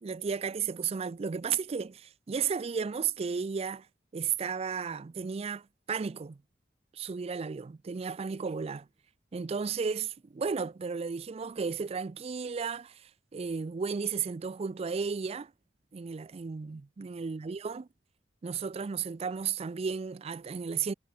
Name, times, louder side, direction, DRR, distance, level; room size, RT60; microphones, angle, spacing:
voice 1, 0.0-3.9 4.1-6.4 6.9-8.9 9.3-15.5 15.9-17.9 18.4-20.9, right 6 dB, 35° right, 0.4 m, -34 dB
head